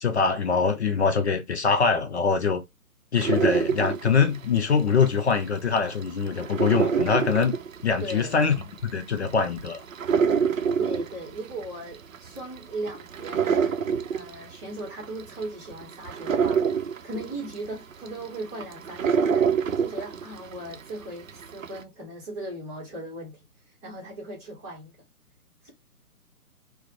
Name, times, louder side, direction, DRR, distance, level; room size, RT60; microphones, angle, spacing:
voice 1, 0.0-2.6 3.1-7.5 7.8-8.5 8.8-9.8, left 5 dB, 45° left, 0.6 m, -23 dB
sound 1, 3.2-5.4 5.8-20.9 21.3-21.8, right 6 dB, 60° right, 0.6 m, -26 dB
voice 2, 8.0-8.4 10.8-13.8 14.1-16.6 17.0-23.4 23.8-24.9 25.6-25.7, right 1 dB, 10° right, 0.8 m, -38 dB
4.6 x 2.1 x 3.1 m
figure-of-eight pair, 140°, 47 cm